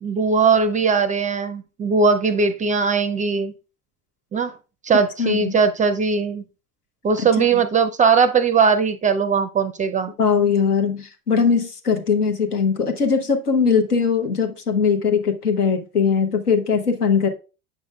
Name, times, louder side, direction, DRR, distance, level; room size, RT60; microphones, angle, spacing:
voice 1, 0.0-3.5 4.3-4.5 4.8-6.4 7.0-10.1, right 5 dB, 20° right, 10 dB, 0.4 m, -19 dB
voice 2, 5.2-5.5 7.2-7.5 10.2-17.3, left 6 dB, 85° left, 5 dB, 1.0 m, -20 dB
7.9 x 6.2 x 2.2 m, 0.33 s
figure-of-eight pair, 65°, 44 cm